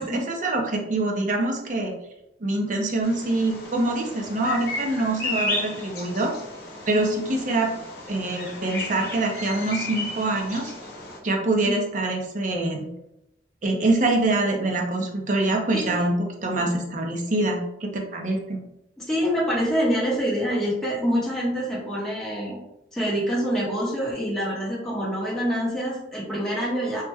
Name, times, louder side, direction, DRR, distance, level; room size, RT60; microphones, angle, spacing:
voice 1, 0.0-1.9 2.4-6.3 6.9-7.7 8.1-10.7 11.2-12.9 13.6-18.6, right 2 dB, 45° right, 1 dB, 0.6 m, -25 dB
Bird vocalization bird call bird song, 3.0-11.2, left 2 dB, 60° left, 0.8 m, -34 dB
voice 2, 19.0-22.6 22.9-27.0, equal, 5° left, -7 dB, 0.8 m, -26 dB
3.1 x 2.1 x 3.3 m, 0.82 s
head